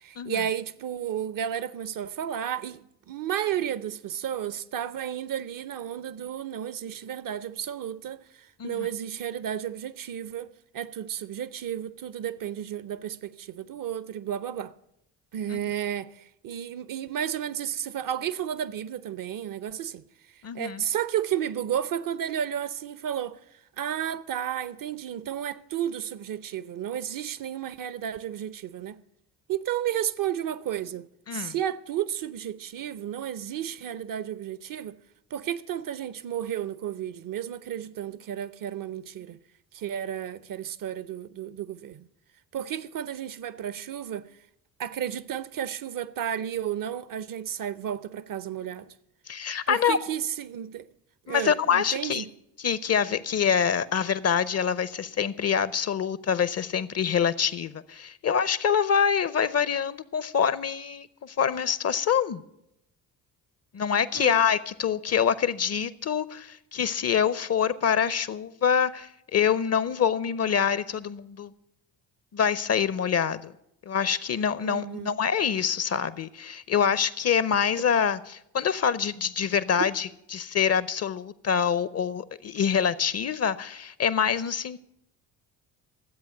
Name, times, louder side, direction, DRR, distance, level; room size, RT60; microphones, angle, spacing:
voice 1, 0.0-14.7 15.3-20.0 20.5-23.4 23.8-29.0 29.5-35.0 35.3-39.4 39.7-42.1 42.5-44.3 44.8-48.9 49.7-50.9 51.3-52.3 64.1-64.4 74.6-75.2, right 10 dB, 45° right, 0.7 m, -32 dB
voice 2, 20.4-20.8 31.3-31.5 49.3-50.0 51.3-52.2 52.6-62.4 63.7-71.5 72.3-73.5 73.9-84.8, left 7 dB, 35° left, 0.6 m, -25 dB
13.0 x 8.1 x 7.8 m
hypercardioid pair, 50°, 47 cm